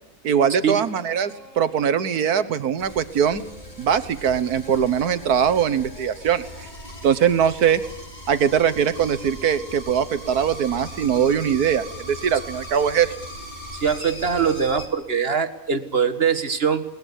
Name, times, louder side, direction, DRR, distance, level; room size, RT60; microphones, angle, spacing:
voice 1, 0.2-3.4 3.8-6.7 7.0-7.8 8.3-13.1, right 8 dB, 90° right, 13 dB, 1.8 m, -21 dB
sound 1, 0.8-7.8, equal, 55° left, 8.0 m, -50 dB
sound 2, 2.8-14.9, equal, 30° left, 3.9 m, -39 dB
voice 2, 13.8-16.8, right 6 dB, 40° right, 10 dB, 1.8 m, -22 dB
22.0 x 19.5 x 8.2 m, 0.83 s
omnidirectional pair, 1.6 m